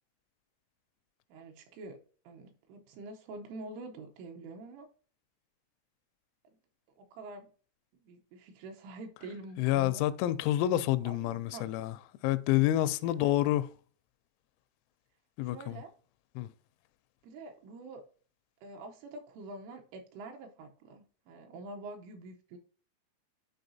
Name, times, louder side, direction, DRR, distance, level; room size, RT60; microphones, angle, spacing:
voice 1, 1.3-2.0 2.2-4.9 7.0-7.5 8.0-10.0 11.0-11.7 13.1-13.6 15.4-15.9 17.2-18.0 18.6-22.6, right 2 dB, 80° right, 3.2 m, -46 dB
voice 2, 9.6-11.9 12.2-13.7 15.4-15.8 16.4-16.5, left 14 dB, 85° left, 3.2 m, -28 dB
11.5 x 4.7 x 2.7 m
omnidirectional pair, 6.0 m